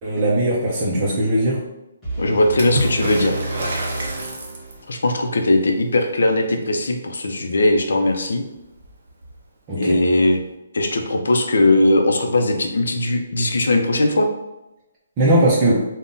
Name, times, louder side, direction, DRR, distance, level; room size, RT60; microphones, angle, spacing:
voice 1, 0.0-1.6 9.7-10.0 15.2-15.8, right 1 dB, 20° right, -7 dB, 0.4 m, -19 dB
sound 1, 2.0-5.1, right 2 dB, 5° left, 0.9 m, -30 dB
voice 2, 2.2-3.3 4.9-8.4 9.7-10.4 10.7-14.3, left 2 dB, 80° left, 4 dB, 0.5 m, -19 dB
Water / Splash splatter, 2.6-5.0 8.3-8.4 8.6-9.4 10.5-10.6, right 1 dB, 55° right, 0.7 m, -28 dB
3.5 x 2.1 x 2.5 m, 0.94 s
hypercardioid pair, 175°, 0 cm